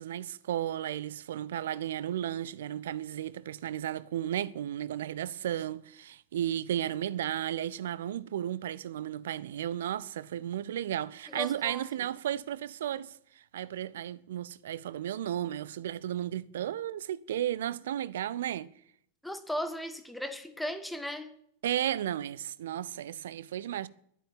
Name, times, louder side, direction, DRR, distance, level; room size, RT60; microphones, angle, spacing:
voice 1, 0.0-13.2 13.5-18.7 21.6-23.9, right 11 dB, 60° right, 0.6 m, -34 dB
voice 2, 11.3-11.9 19.2-21.3, equal, 5° left, 1.4 m, -36 dB
12.0 x 10.0 x 9.0 m
figure-of-eight pair, 90°, 0 cm